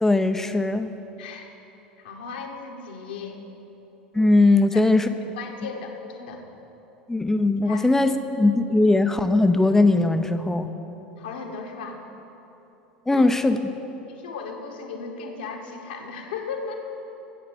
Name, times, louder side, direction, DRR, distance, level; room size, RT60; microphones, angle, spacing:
voice 1, 0.0-0.9 4.1-5.1 7.1-10.7 13.1-13.6, left 2 dB, 5° left, 9 dB, 0.7 m, -19 dB
voice 2, 2.0-3.4 4.7-4.9 5.4-6.4 7.7-7.9 11.2-12.0 13.1-13.3 14.1-16.8, left 5 dB, 65° left, 2 dB, 1.7 m, -36 dB
15.5 x 7.8 x 6.8 m, 3.0 s
figure-of-eight pair, 75°, 5 cm